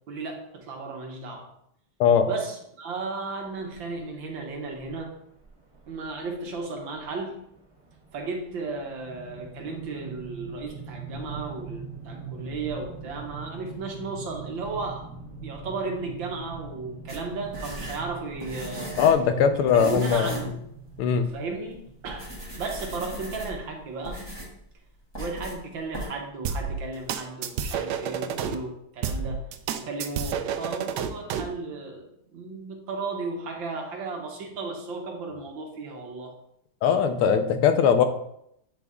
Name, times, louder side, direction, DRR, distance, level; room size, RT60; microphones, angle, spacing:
voice 1, 0.1-1.5 2.2-5.1 5.9-7.4 8.1-15.0 15.4-18.9 19.5-20.6 21.1-22.3 22.6-24.2 25.2-29.4 29.7-36.3, right 3 dB, 65° right, 1 dB, 1.7 m, -35 dB
sound 1, 3.7-4.0 4.8-4.9 5.3-5.4 5.7-6.0 6.4-22.8, right 4 dB, 20° right, 0.9 m, -42 dB
sound 2, 17.1-19.3 19.7-20.5 20.9-21.0 21.6-21.7 22.0-23.7 24.0-24.6 25.1-25.6 25.9-26.1, equal, 10° left, 1.8 m, -38 dB
voice 2, 19.0-20.3 21.0-21.3 36.8-38.0, left 7 dB, 85° left, 8 dB, 1.6 m, -20 dB
sound 3, 26.4-28.5 29.0-31.5, right 7 dB, 80° right, 0.9 m, -30 dB
8.3 x 4.0 x 3.6 m, 0.75 s
omnidirectional pair, 2.4 m